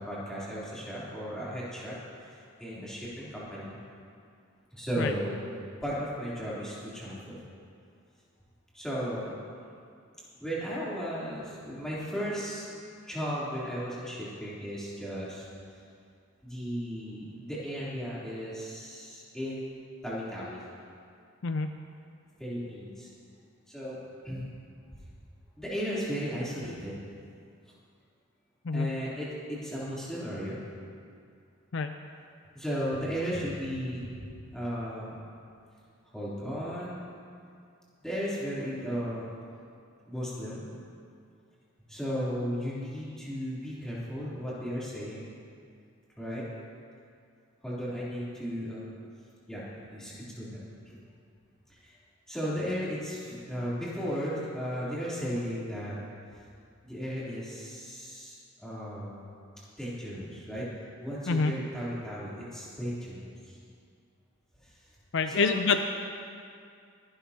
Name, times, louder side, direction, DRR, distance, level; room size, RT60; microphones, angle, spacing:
voice 1, 0.0-2.0 2.6-3.8 4.7-5.5 5.8-7.4 8.7-9.4 10.4-12.7 13.1-15.5 16.4-20.6 22.4-23.1 23.7-24.0 24.2-24.4 25.6-27.0 28.7-30.6 32.5-35.2 36.1-37.0 38.0-39.4 40.1-40.7 41.9-45.3 46.2-46.4 47.6-48.8 49.5-51.0 51.7-51.9 52.3-56.0 56.8-58.3 58.6-59.2 59.8-60.6 61.0-63.6 64.6-64.7 65.3-65.6, equal, 5° left, -9 dB, 3.3 m, -35 dB
voice 2, 21.4-21.8 28.7-29.0 31.7-32.0 61.3-61.5 65.1-65.8, left 4 dB, 55° left, 7 dB, 0.5 m, -27 dB
23.0 x 11.5 x 2.9 m, 2.4 s
head